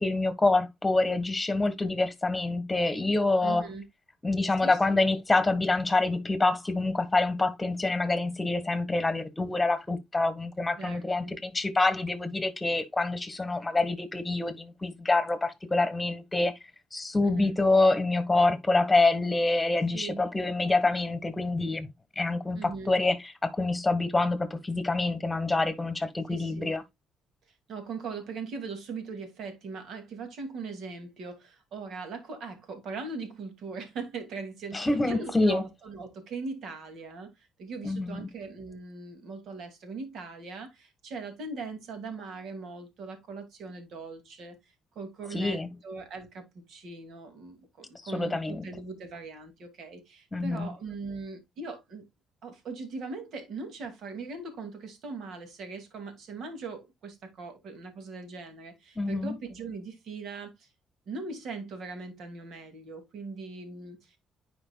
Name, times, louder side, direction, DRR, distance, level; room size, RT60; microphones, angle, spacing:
voice 1, 0.0-3.6 4.2-16.5 16.9-21.9 22.1-26.8 34.7-35.6 37.8-38.3 45.3-45.7 48.0-48.6 50.3-50.7 58.9-59.4, left 2 dB, 20° left, 1.6 m, -26 dB
voice 2, 3.4-3.8 4.6-5.0 10.8-11.4 17.2-17.6 19.9-20.2 22.5-22.9 26.3-26.7 27.7-37.3 37.6-44.6 44.9-52.0 52.4-60.7 61.1-64.2, right 4 dB, 70° right, 2.5 m, -40 dB
9.9 x 5.1 x 2.3 m
supercardioid pair, 65°, 0 cm